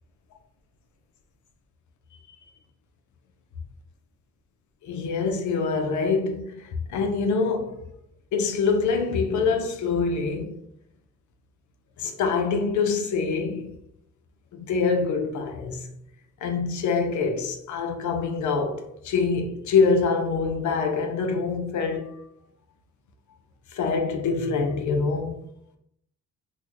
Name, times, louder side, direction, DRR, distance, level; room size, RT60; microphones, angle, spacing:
voice 1, 4.8-7.8 8.3-10.6 12.0-13.8 14.5-15.9 16.4-22.2 23.7-25.4, left 4 dB, 75° left, 0.7 m, -25 dB
3.8 x 2.2 x 3.0 m
cardioid pair, 90°, 30 cm